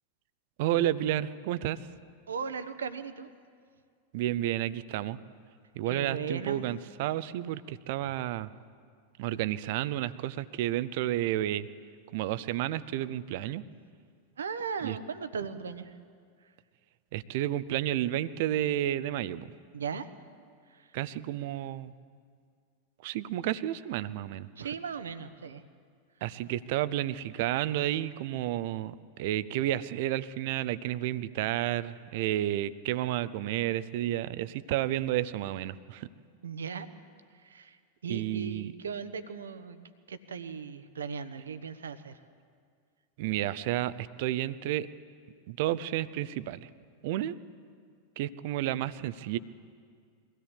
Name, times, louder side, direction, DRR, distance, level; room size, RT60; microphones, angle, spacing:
voice 1, 0.6-1.8 4.1-5.2 5.7-8.5 9.2-11.7 12.1-13.6 14.8-15.0 17.1-19.5 20.9-21.9 23.0-24.5 26.2-36.1 38.1-38.7 43.2-44.9 45.5-46.7 47.0-47.4 48.2-49.4, right 13 dB, 50° right, 17 dB, 0.7 m, -31 dB
voice 2, 2.3-3.3 5.9-6.6 14.4-16.0 19.7-20.1 20.7-20.9 24.6-25.6 36.4-36.9 37.3-42.2, right 6 dB, 70° right, 12 dB, 1.1 m, -38 dB
23.0 x 16.5 x 8.5 m, 2.1 s
figure-of-eight pair, 90°, 0 cm